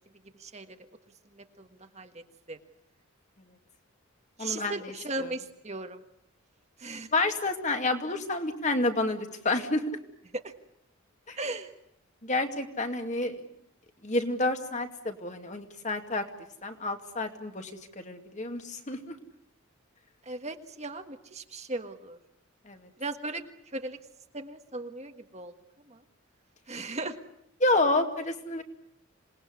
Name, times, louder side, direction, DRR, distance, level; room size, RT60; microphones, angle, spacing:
voice 1, 0.4-0.8 1.3-2.6 4.4-6.0 6.8-7.1 10.3-10.5 11.4-11.7 20.2-22.2 23.0-24.0 24.3-25.5 25.8-26.0 26.7-27.2, right 2 dB, 30° right, 6 dB, 1.6 m, -37 dB
voice 2, 4.4-4.9 5.2-5.3 7.1-10.0 11.3-11.4 12.2-13.4 14.0-16.2 16.6-19.2 22.7-22.9 27.6-28.6, left 2 dB, 35° left, 5 dB, 2.3 m, -29 dB
27.0 x 20.0 x 9.7 m, 0.77 s
head